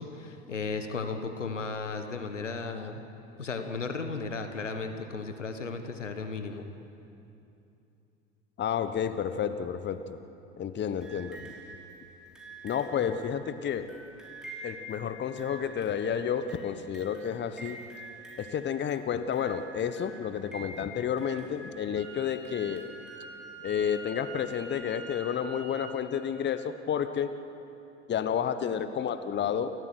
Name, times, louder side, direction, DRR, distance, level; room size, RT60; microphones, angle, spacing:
voice 1, 0.0-3.0 3.4-6.7, left 4 dB, 90° left, 7 dB, 1.4 m, -35 dB
voice 2, 8.6-10.2 10.6-11.5 12.6-13.9 14.6-17.8 18.4-22.8 23.6-27.3 28.1-29.7, left 8 dB, 30° left, 11 dB, 1.2 m, -31 dB
sound 1, 11.0-23.8 24.8-24.9, right 2 dB, ahead, 5.7 m, -48 dB
Wind instrument woodwind instrument, 22.0-26.0, right 3 dB, 60° right, 6.8 m, -45 dB
29.0 x 14.5 x 7.9 m, 2.8 s
figure-of-eight pair, 70°, 36 cm